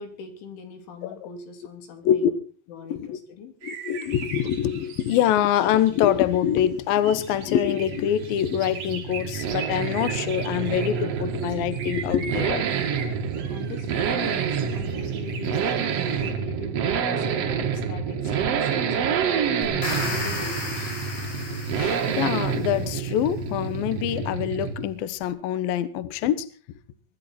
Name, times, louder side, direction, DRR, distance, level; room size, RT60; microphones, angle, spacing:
voice 1, 0.0-2.4 2.7-3.6 13.4-20.9, left 4 dB, 90° left, 6 dB, 5.3 m, -41 dB
voice 2, 3.6-12.9 21.5-26.5, left 10 dB, 70° left, 15 dB, 2.3 m, -25 dB
sound 1, 3.6-6.5 7.0-16.3, right 6 dB, 40° right, 3.5 m, -40 dB
Accelerating revving vroom, 6.8-25.0 25.2-25.3, right 7 dB, 80° right, 1.4 m, -28 dB
sound 2, 19.6-22.8, left 3 dB, 50° left, 6.2 m, -33 dB
22.5 x 13.0 x 4.3 m, 0.40 s
omnidirectional pair, 5.3 m